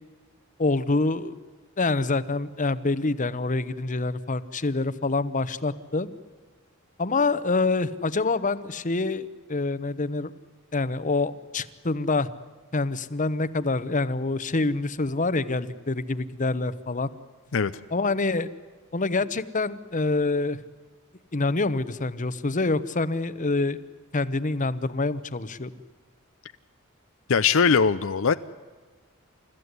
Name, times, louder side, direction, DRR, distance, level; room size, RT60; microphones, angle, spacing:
voice 1, 0.6-1.3 1.8-6.1 7.0-10.3 10.7-12.3 12.7-17.1 17.9-18.5 18.9-20.6 21.3-23.8 24.1-25.7, left 3 dB, 35° left, 15 dB, 1.0 m, -26 dB
voice 2, 27.3-28.3, left 5 dB, 65° left, 11 dB, 0.6 m, -20 dB
29.0 x 14.5 x 9.6 m, 1.5 s
head